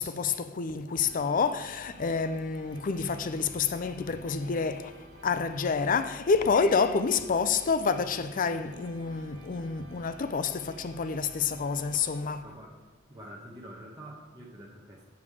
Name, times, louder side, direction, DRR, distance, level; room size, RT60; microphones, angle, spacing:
voice 1, 0.0-12.4, left 5 dB, 40° left, 0.5 m, -28 dB
sound 1, 0.9-12.9, right 2 dB, 50° right, 1.5 m, -52 dB
voice 2, 12.4-12.7 13.1-15.0, right 1 dB, 20° right, 0.9 m, -46 dB
7.1 x 6.9 x 4.9 m
head